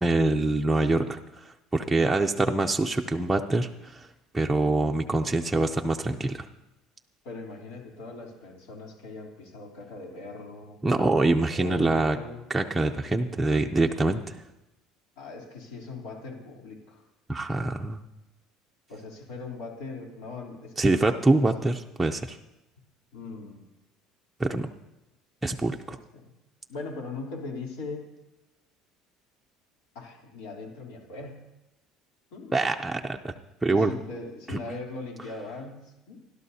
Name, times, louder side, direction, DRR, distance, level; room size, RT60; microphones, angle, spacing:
voice 1, 0.0-4.1 4.3-6.5 10.8-12.2 12.5-14.4 17.3-18.0 20.8-22.4 24.4-24.7 25.4-26.0 32.5-33.3 33.6-33.9, right 2 dB, 5° right, 2 dB, 0.5 m, -25 dB
voice 2, 7.2-10.8 11.5-12.4 15.2-17.0 18.9-21.0 23.1-23.6 26.1-26.3 26.7-28.1 29.9-31.4 32.3-32.6 33.7-36.2, left 3 dB, 85° left, 0 dB, 3.3 m, -40 dB
29.5 x 12.0 x 2.8 m, 0.98 s
cardioid pair, 150°, 0 cm